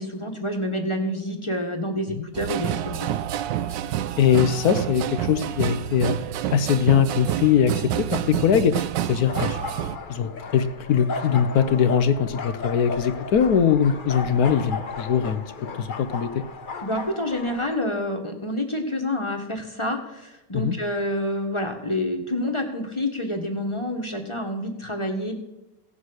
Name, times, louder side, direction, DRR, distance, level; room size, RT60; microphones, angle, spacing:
voice 1, 0.0-3.1 16.8-25.3, left 1 dB, 20° left, 3 dB, 1.4 m, -28 dB
sound 1, 2.3-10.0, right 11 dB, 80° right, 1.3 m, -28 dB
voice 2, 4.2-6.2 6.5-9.6 10.1-15.4 15.8-16.3 20.5-20.8, left 8 dB, 65° left, 11 dB, 1.1 m, -21 dB
sound 2, 9.3-17.8, left 4 dB, 40° left, 0.7 m, -35 dB
17.0 x 7.4 x 6.4 m, 0.92 s
omnidirectional pair, 1.9 m